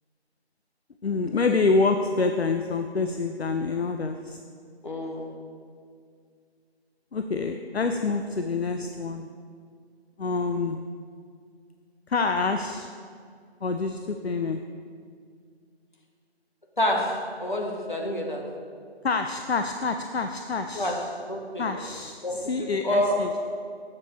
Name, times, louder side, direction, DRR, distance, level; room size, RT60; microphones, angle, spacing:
voice 1, 1.0-4.4 7.1-9.3 10.2-10.9 12.1-12.9 13.6-14.6 19.0-21.0 21.6-23.3, left 4 dB, 70° left, 6 dB, 0.5 m, -27 dB
voice 2, 4.8-5.4 16.8-18.5 20.7-21.0 21.3-21.7 22.2-23.2, left 1 dB, 45° left, 0 dB, 1.1 m, -28 dB
7.4 x 4.0 x 6.4 m, 2.1 s
figure-of-eight pair, 175°, 33 cm